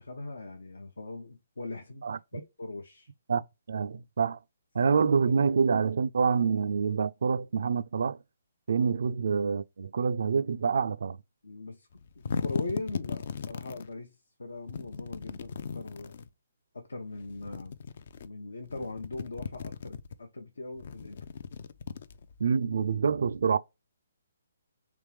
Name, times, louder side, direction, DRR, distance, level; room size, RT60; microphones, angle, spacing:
voice 1, 0.0-2.1 2.3-3.1 8.8-8.9 11.4-11.9 12.4-16.1 16.7-17.8 18.2-21.2, left 2 dB, 80° left, 0.7 m, -40 dB
voice 2, 3.7-4.4 4.7-8.2 8.7-11.2 22.4-23.6, right 5 dB, 65° right, 0.3 m, -26 dB
sound 1, 11.9-13.9 14.7-16.3 17.2-18.3 18.6-20.2 20.7-22.5, left 6 dB, 55° left, 0.4 m, -37 dB
3.5 x 3.0 x 3.2 m
hypercardioid pair, 145°, 0 cm